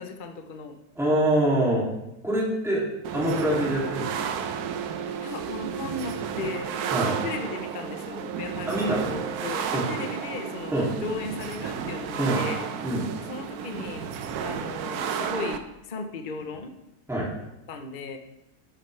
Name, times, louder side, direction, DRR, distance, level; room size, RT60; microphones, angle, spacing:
voice 1, 0.0-0.8 5.2-10.7 11.0-12.7 13.3-14.1 14.4-16.7 17.7-18.2, left 4 dB, 40° left, 5 dB, 0.8 m, -36 dB
voice 2, 1.0-1.8 2.2-2.8 3.1-4.5 6.9-7.2 8.7-9.0 9.7-9.8 10.7-10.9 12.2-12.4 12.8-13.1 17.1-17.3, right 1 dB, ahead, -5 dB, 2.4 m, -25 dB
sound 1, 3.0-15.6, right 7 dB, 75° right, 1.2 m, -32 dB
11.5 x 8.9 x 3.2 m, 0.91 s
omnidirectional pair, 1.7 m